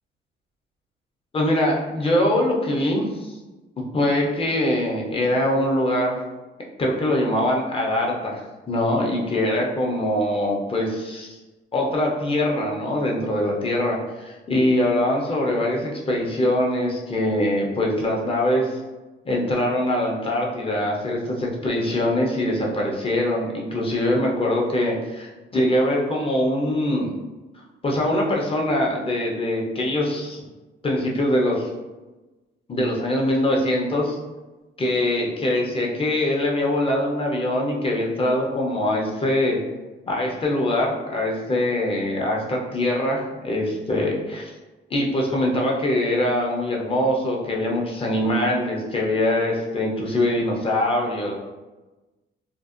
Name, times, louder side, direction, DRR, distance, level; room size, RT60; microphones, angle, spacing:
voice 1, 1.3-3.4 3.8-6.2 6.8-8.4 8.7-11.4 11.7-18.8 19.2-27.1 27.8-30.4 30.8-31.7 32.7-34.2 34.8-39.6 40.1-44.5 44.9-51.3, left 1 dB, 30° left, -2 dB, 0.6 m, -23 dB
2.5 x 2.0 x 2.4 m, 1.1 s
cardioid pair, 90°, 20 cm